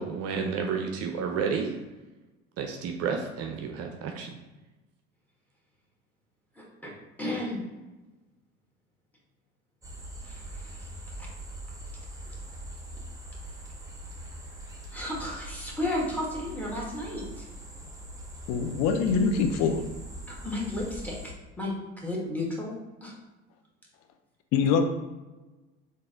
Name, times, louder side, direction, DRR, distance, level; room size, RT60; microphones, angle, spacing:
voice 1, 0.0-1.8 2.6-4.3, right 6 dB, 50° right, 4 dB, 0.5 m, -31 dB
voice 2, 6.5-6.9 7.2-7.6 10.2-11.3 12.3-12.4 14.9-17.4 20.3-22.7 23.0-23.1, left 1 dB, 5° left, -4 dB, 1.4 m, -34 dB
sound 1, 9.8-21.3, right 1 dB, 10° right, 0.9 m, -42 dB
voice 3, 18.5-19.8 24.5-25.0, left 5 dB, 55° left, 6 dB, 0.5 m, -24 dB
3.8 x 2.6 x 3.7 m, 1.1 s
hypercardioid pair, 70°, 32 cm